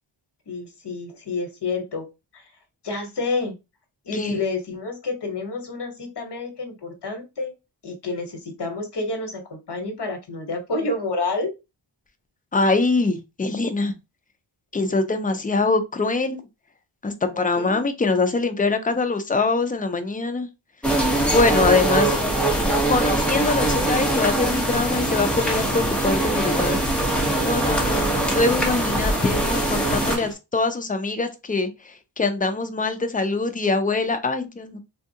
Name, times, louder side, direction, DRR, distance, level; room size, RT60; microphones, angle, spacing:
voice 1, 0.5-2.1 2.3-2.5 2.8-3.5 4.0-7.5 7.8-11.5 17.5-17.8, left 3 dB, 55° left, 1.2 m, -29 dB
voice 2, 12.5-13.9 14.7-16.4 17.0-20.5 21.2-22.2 22.9-26.8 27.4-31.7 32.2-34.8, left 3 dB, 20° left, 0.4 m, -23 dB
sound 1, 20.8-30.2, right 1 dB, ahead, 1.0 m, -22 dB
sound 2, 24.9-30.3, right 1 dB, 25° right, 0.8 m, -38 dB
3.5 x 2.3 x 2.7 m
wide cardioid pair, 100°, 48 cm